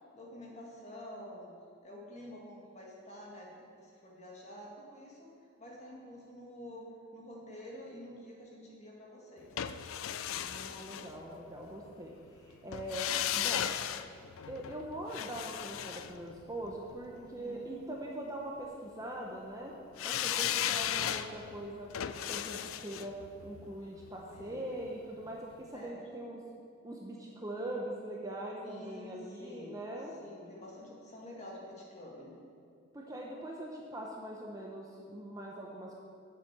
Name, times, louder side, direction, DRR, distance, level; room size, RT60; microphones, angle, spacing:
voice 1, 0.1-1.5 1.8-5.3 5.6-6.9 7.1-9.5 17.1-17.7 24.2-24.6 25.7-26.0 28.6-29.8 30.2-32.4, left 1 dB, 30° left, -3 dB, 1.8 m, -48 dB
sound 1, 9.6-11.7 12.7-17.0 20.0-25.0 25.3-25.4, left 10 dB, 80° left, 0.4 m, -36 dB
voice 2, 10.4-13.7 14.5-19.7 20.0-21.9 22.3-23.1 23.4-26.4 26.8-30.1 32.9-36.0, right 1 dB, 15° right, -1 dB, 0.7 m, -42 dB
7.4 x 7.2 x 7.4 m, 2.5 s
head